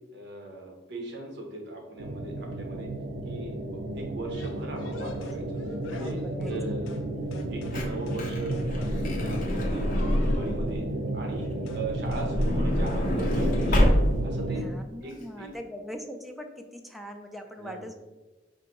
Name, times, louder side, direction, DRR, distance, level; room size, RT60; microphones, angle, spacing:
voice 1, 0.1-2.9 3.2-6.2 6.4-7.2 7.5-9.9 10.1-13.8 14.2-14.7 15.0-15.5 17.6-17.8, right 2 dB, 65° right, 1 dB, 0.8 m, -39 dB
sound 1, 2.0-14.7, right 1 dB, 85° right, 0.4 m, -33 dB
sound 2, 4.3-7.1 7.3-8.3 8.5-10.6 11.7-11.9 12.1-12.6 12.9-13.1 13.3-13.8, left 3 dB, 85° left, 0.4 m, -44 dB
voice 2, 5.9-6.5 14.6-18.0, equal, ahead, 3 dB, 0.3 m, -41 dB
Truck / Door, 7.3-10.8 11.9-14.4 15.1-15.2 15.4-15.5, equal, 50° left, 0.7 m, -26 dB
4.6 x 2.5 x 2.9 m, 1.2 s
head